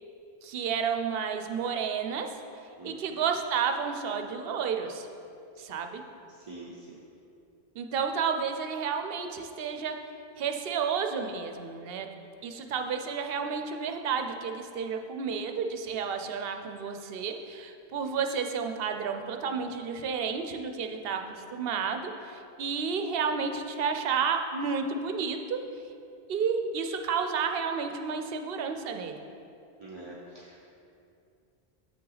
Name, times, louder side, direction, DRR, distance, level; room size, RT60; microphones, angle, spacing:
voice 1, 0.4-2.3 2.8-5.1 5.6-6.0 7.8-10.0 10.4-12.1 12.4-25.6 26.3-29.2, right 6 dB, 65° right, 5 dB, 0.7 m, -31 dB
voice 2, 6.3-7.0 29.8-30.6, right 2 dB, 30° right, -4 dB, 0.5 m, -45 dB
7.7 x 5.7 x 3.9 m, 2.6 s
omnidirectional pair, 1.1 m